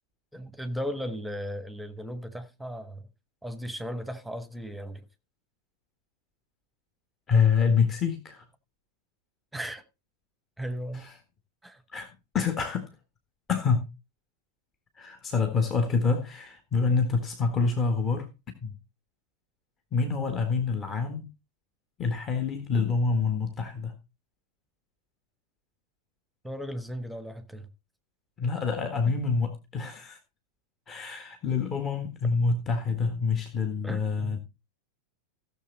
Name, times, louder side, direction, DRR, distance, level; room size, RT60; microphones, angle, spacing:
voice 1, 0.3-3.0 3.4-5.0 9.5-9.8 10.6-11.1 11.6-11.8 26.4-27.7 33.8-34.4, equal, ahead, 1.3 m, -36 dB
voice 2, 7.3-8.4 10.9-11.1 11.9-12.9 13.5-13.8 15.0-18.3 18.6-18.7 19.9-21.3 22.0-23.9 28.4-30.2 30.9-34.4, left 5 dB, 25° left, 1.6 m, -27 dB
16.0 x 7.0 x 4.0 m
figure-of-eight pair, 90°, 0 cm